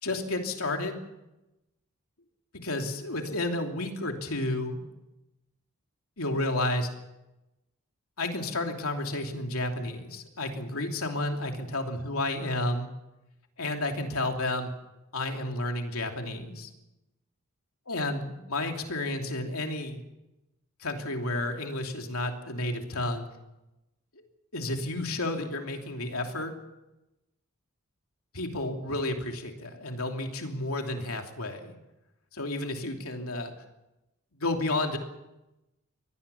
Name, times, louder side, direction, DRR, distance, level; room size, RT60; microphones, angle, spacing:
voice 1, 0.0-1.0 2.5-4.9 6.2-6.9 8.2-12.9 13.6-14.7 15.1-16.7 17.9-20.0 20.8-23.3 24.5-26.5 28.3-31.7 32.3-33.5 34.3-35.0, left 2 dB, 75° left, 3 dB, 3.0 m, -31 dB
24.0 x 18.5 x 7.1 m, 0.97 s
head